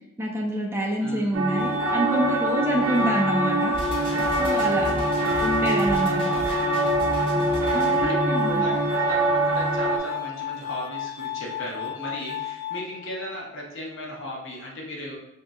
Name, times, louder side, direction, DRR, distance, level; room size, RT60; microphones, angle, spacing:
voice 1, 0.2-3.7 4.4-4.9 5.4-6.3 7.7-8.7, right 1 dB, 10° right, -2 dB, 0.5 m, -27 dB
voice 2, 1.0-1.3 4.7-5.1 6.3-6.8 7.5-15.2, equal, 65° left, -1 dB, 0.9 m, -36 dB
sound 1, 1.3-10.0, right 2 dB, 70° right, 0.6 m, -24 dB
Glass, 1.5-13.5, left 12 dB, 45° left, 0.3 m, -34 dB
sound 2, 3.7-8.0, equal, 25° left, 0.8 m, -35 dB
3.2 x 2.7 x 3.6 m, 0.89 s
head